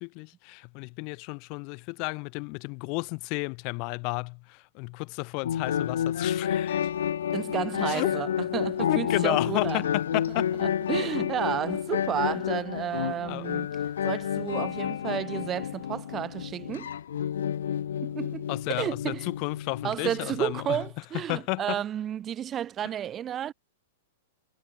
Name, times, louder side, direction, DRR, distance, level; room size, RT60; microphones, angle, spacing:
voice 1, 0.0-6.8 7.9-8.1 8.9-10.5 13.3-13.5 18.5-20.8 21.3-21.8, left 34 dB, 40° left, 1.9 m, -32 dB
sound 1, 5.4-20.9, left 9 dB, 85° left, 0.8 m, -30 dB
voice 2, 7.3-9.9 10.1-10.2 10.6-13.7 14.0-16.9 18.0-19.3 19.8-23.5, right 10 dB, 20° right, 1.1 m, -32 dB
hypercardioid pair, 155°, 0 cm